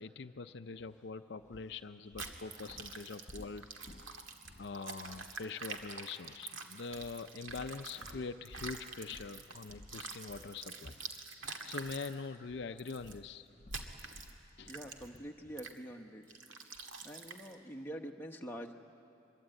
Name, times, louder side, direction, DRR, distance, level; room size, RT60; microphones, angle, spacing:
voice 1, 0.0-3.7 4.6-10.9 11.3-13.5 14.6-14.8, left 4 dB, 60° left, 9 dB, 0.5 m, -44 dB
sound 1, 0.8-1.0 1.4-5.9 6.2-6.4 6.9-12.0 12.3-15.8, left 1 dB, 40° left, 0.9 m, -57 dB
sound 2, 2.2-8.1 8.4-12.1 12.8-13.1 13.7-14.3 14.7-15.2 15.6-15.8 16.3-17.5, right 4 dB, 90° right, 1.9 m, -46 dB
voice 2, 14.6-16.2 17.0-18.8, equal, 10° left, 2 dB, 1.0 m, -45 dB
24.0 x 22.5 x 9.0 m, 2.7 s
head